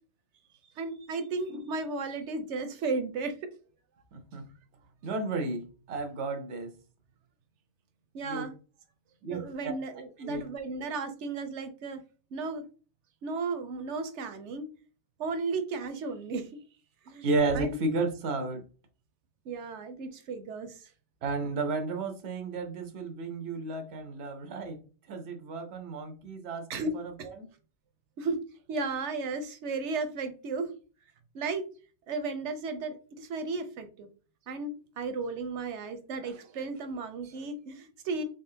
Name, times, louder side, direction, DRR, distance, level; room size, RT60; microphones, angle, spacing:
voice 1, 0.8-3.4 8.1-8.5 9.3-12.0 12.3-12.6 13.2-14.7 15.2-16.5 17.1-17.3 17.5-17.8 19.5-20.8 26.7-26.9 27.2-27.3 28.2-28.4 28.7-30.7 31.3-31.7 32.1-34.1 34.5-38.2, right 3 dB, 90° right, 1.0 m, -34 dB
voice 2, 4.1-4.5 5.0-6.7 8.2-8.5 9.2-9.7 10.2-10.5 17.2-18.6 21.2-24.8 25.1-27.5, right 3 dB, 65° right, 1.1 m, -33 dB
4.1 x 3.5 x 2.7 m
omnidirectional pair, 1.2 m